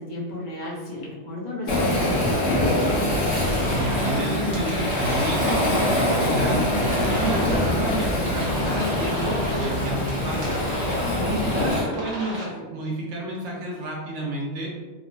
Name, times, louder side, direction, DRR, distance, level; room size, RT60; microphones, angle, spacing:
voice 1, 0.0-2.5 11.2-11.5, left 1 dB, 50° left, -6 dB, 0.9 m, -34 dB
Waves surf, 1.7-11.8, left 1 dB, 75° left, 1.1 m, -23 dB
sound 1, 3.2-12.5, right 1 dB, 45° right, 0.9 m, -35 dB
voice 2, 3.6-5.7 5.9-6.7 7.0-10.6 11.1-14.7, right 2 dB, 85° right, -3 dB, 1.0 m, -31 dB
3.1 x 2.0 x 2.6 m, 1.4 s
omnidirectional pair, 1.1 m